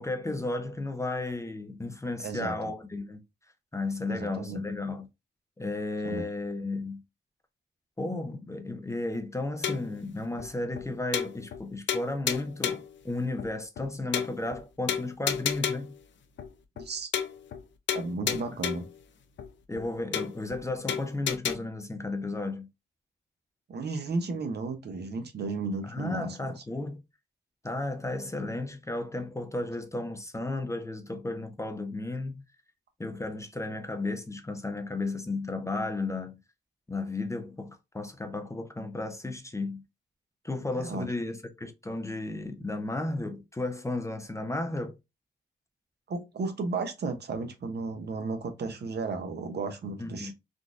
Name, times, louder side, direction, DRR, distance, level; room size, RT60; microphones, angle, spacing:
voice 1, 0.0-3.2 3.7-5.1 5.6-7.0 8.0-15.9 18.2-18.4 19.7-22.7 25.8-27.0 27.6-32.4 33.0-36.4 36.9-39.8 40.4-44.9 50.0-50.3, left 2 dB, 15° left, 0.5 m, -34 dB
voice 2, 2.2-2.5 4.1-4.6 6.0-6.2 16.8-17.1 17.9-18.8 23.7-26.3 40.8-41.1 46.1-50.3, right 3 dB, 60° right, 0.8 m, -34 dB
sound 1, 9.6-10.0 10.4-10.5 10.8-10.9 11.1-11.6 11.9-12.9 13.4-13.5 13.8-13.9 14.1-14.6 14.9-16.0 16.4-16.5 16.8-16.9 17.1-17.6 17.9-19.0 19.4-19.5 19.8-19.9 20.1-20.6 20.9-21.5, left 8 dB, 70° left, 0.5 m, -31 dB
3.7 x 2.4 x 2.4 m
cardioid pair, 70°, 20 cm